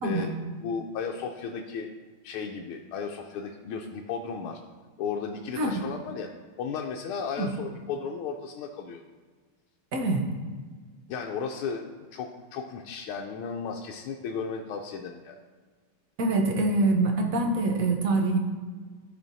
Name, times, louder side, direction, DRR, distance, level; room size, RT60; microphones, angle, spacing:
voice 1, 0.0-1.9 2.2-4.6 5.0-6.3 6.6-9.0 11.1-15.4, left 6 dB, 85° left, 1 dB, 1.4 m, -35 dB
voice 2, 16.2-18.4, right 2 dB, 60° right, 3 dB, 0.9 m, -25 dB
12.5 x 4.5 x 2.7 m, 1.5 s
omnidirectional pair, 2.3 m